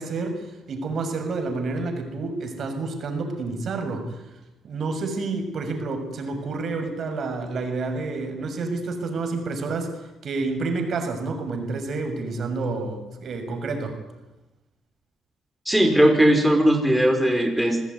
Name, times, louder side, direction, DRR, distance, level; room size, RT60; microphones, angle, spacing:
voice 1, 0.0-4.2 4.6-9.9 10.2-13.9, right 3 dB, 55° right, 6 dB, 6.4 m, -29 dB
voice 2, 15.6-17.8, equal, 5° right, 3 dB, 5.1 m, -18 dB
27.0 x 19.5 x 9.7 m, 1.0 s
cardioid pair, 90°, 0 cm